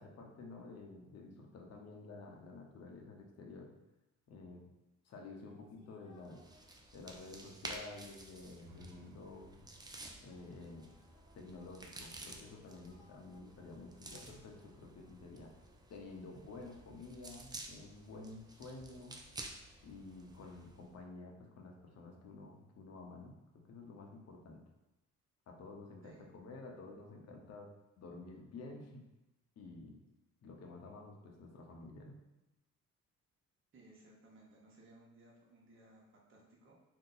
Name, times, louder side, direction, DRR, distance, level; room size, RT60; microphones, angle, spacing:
voice 1, 0.0-3.7 4.3-4.6 5.0-6.4 6.9-9.6 10.2-11.0 11.3-15.5 15.9-19.2 19.8-24.6 25.5-27.7 28.0-29.0 29.6-30.0 30.4-32.2, left 3 dB, 55° left, 1 dB, 0.7 m, -51 dB
sound 1, 5.5-9.5 9.9-16.4, equal, 90° left, 0.8 m, -69 dB
sound 2, 6.2-20.9, right 2 dB, 15° right, 0.3 m, -52 dB
sound 3, 8.6-12.4, right 1 dB, 80° right, 0.4 m, -62 dB
voice 2, 33.7-36.7, right 2 dB, 40° right, -3 dB, 0.9 m, -61 dB
2.7 x 2.2 x 3.9 m, 0.98 s
cardioid pair, 90°, 30 cm